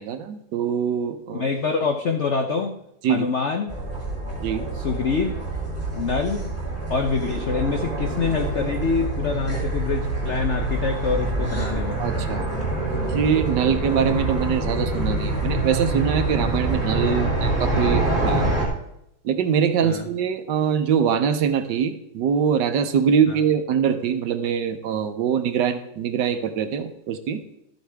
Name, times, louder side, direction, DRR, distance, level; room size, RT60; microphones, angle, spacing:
voice 1, 0.0-1.5 3.0-3.3 4.4-4.7 12.0-12.5 13.1-18.5 19.2-27.4, right 7 dB, 70° right, 9 dB, 1.3 m, -23 dB
voice 2, 1.3-2.8 3.1-3.8 4.7-5.3 5.9-6.6 6.9-12.0 19.8-20.1, left 5 dB, 70° left, 5 dB, 0.6 m, -25 dB
sound 1, 3.7-18.7, right 2 dB, 5° left, 2.2 m, -26 dB
12.5 x 8.0 x 3.4 m, 0.79 s
omnidirectional pair, 2.1 m